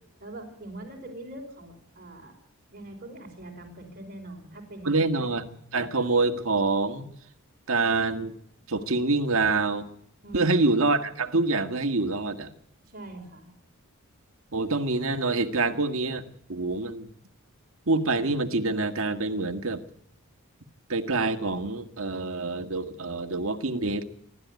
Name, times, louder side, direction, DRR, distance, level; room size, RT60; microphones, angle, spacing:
voice 1, 0.2-2.3 2.7-5.2 10.2-10.6 12.9-13.5, right 1 dB, 40° right, 3 dB, 4.8 m, -43 dB
voice 2, 4.8-7.1 7.7-8.3 8.7-9.8 10.3-12.5 14.5-16.2 16.5-17.1 17.9-19.8 20.9-24.0, right 3 dB, 65° right, 6 dB, 1.8 m, -26 dB
28.0 x 12.5 x 9.5 m, 0.68 s
head